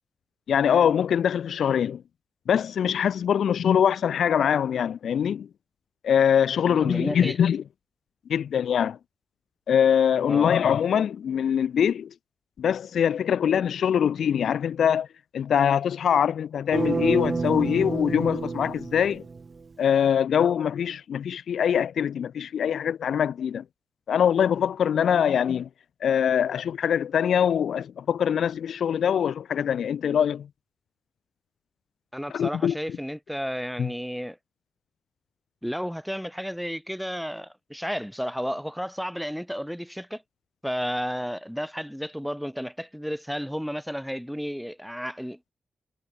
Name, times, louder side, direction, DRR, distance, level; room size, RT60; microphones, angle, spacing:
voice 1, 0.5-2.0 2.5-5.5 6.0-7.6 8.3-9.0 9.7-12.1 12.6-15.1 15.3-19.2 19.8-23.6 24.1-25.7 26.0-30.5 32.3-32.8 33.8-33.9, left 8 dB, 75° left, 0.5 m, -23 dB
voice 2, 6.7-7.4 10.3-10.5 32.1-34.4 35.6-40.2 40.6-45.5, equal, ahead, 3.4 m, -32 dB
sound 1, 16.7-19.7, right 4 dB, 35° right, 3.3 m, -29 dB
wide cardioid pair, 110°, 0 cm